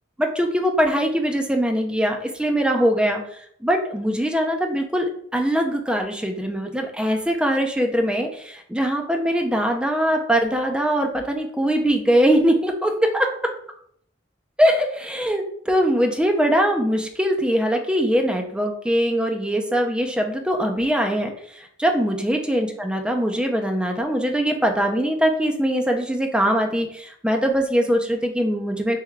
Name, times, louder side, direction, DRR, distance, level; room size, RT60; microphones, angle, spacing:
voice 1, 0.2-3.2 3.6-13.3 14.6-29.0, equal, 5° right, 3 dB, 0.5 m, -22 dB
3.5 x 3.4 x 3.2 m, 0.65 s
head